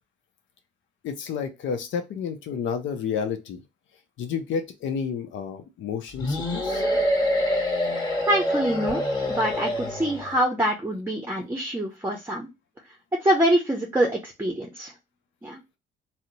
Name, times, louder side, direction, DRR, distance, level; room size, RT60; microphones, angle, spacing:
voice 1, 1.0-3.6 4.2-6.8, left 6 dB, 75° left, 7 dB, 0.6 m, -30 dB
sound 1, 6.2-10.4, left 1 dB, 20° left, 1.6 m, -26 dB
voice 2, 8.3-9.0 9.3-12.5 13.2-14.9 15.4-15.6, right 1 dB, 10° right, 2 dB, 0.7 m, -25 dB
2.7 x 2.1 x 3.9 m, 0.24 s
cardioid pair, 90°, 20 cm